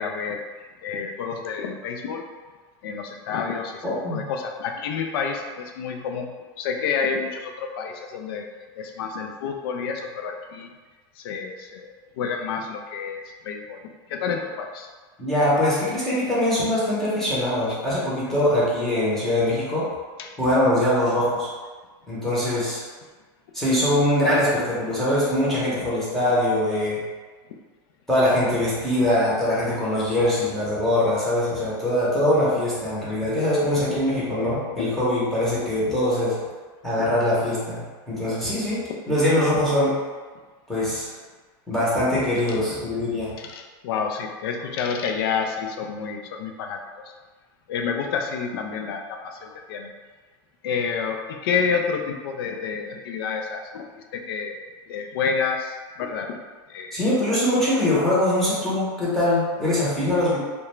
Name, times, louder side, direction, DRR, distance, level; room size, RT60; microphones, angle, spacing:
voice 1, 0.0-2.3 2.8-3.8 4.1-8.5 8.8-10.7 11.2-13.8 14.1-14.9 20.2-20.3 42.5-42.6 43.4-47.1 47.7-49.9 50.6-56.4 56.7-57.0, left 6 dB, 80° left, 4 dB, 0.4 m, -29 dB
voice 2, 3.8-4.2 15.2-19.9 20.4-21.5 22.1-22.8 23.5-27.0 28.1-36.4 36.8-38.8 39.1-40.0 40.7-41.1 41.7-43.3 56.9-60.4, left 1 dB, ahead, -10 dB, 0.7 m, -22 dB
2.3 x 2.2 x 3.0 m, 1.4 s
supercardioid pair, 160°, 12 cm